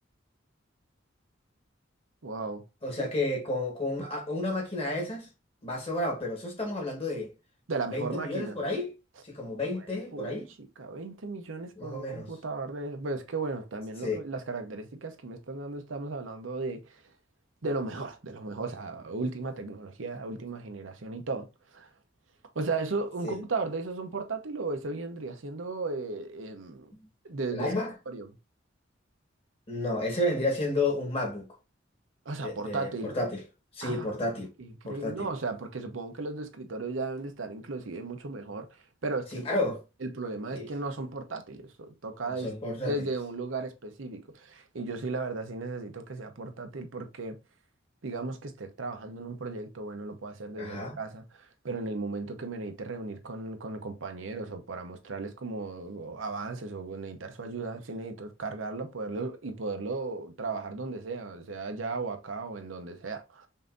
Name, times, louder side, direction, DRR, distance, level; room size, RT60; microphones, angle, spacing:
voice 1, 2.2-2.6 3.0-3.1 7.7-8.6 9.7-17.0 17.6-21.9 22.5-26.9 27.2-27.7 28.1-28.3 32.3-33.1 33.8-34.2 34.6-38.7 39.0-39.5 40.0-42.5 42.8-47.4 48.0-63.5, right 3 dB, 85° right, 0.8 m, -36 dB
voice 2, 2.8-5.3 5.6-7.3 7.9-8.9 9.2-10.5 11.8-12.3 14.0-14.2 23.2-23.4 26.9-27.1 27.5-27.9 29.7-31.5 32.4-33.4 33.7-34.5 34.8-35.3 39.3-39.8 40.5-40.7 42.3-43.0 50.6-51.0, left 2 dB, 30° left, 1.6 m, -31 dB
5.5 x 2.7 x 2.5 m
head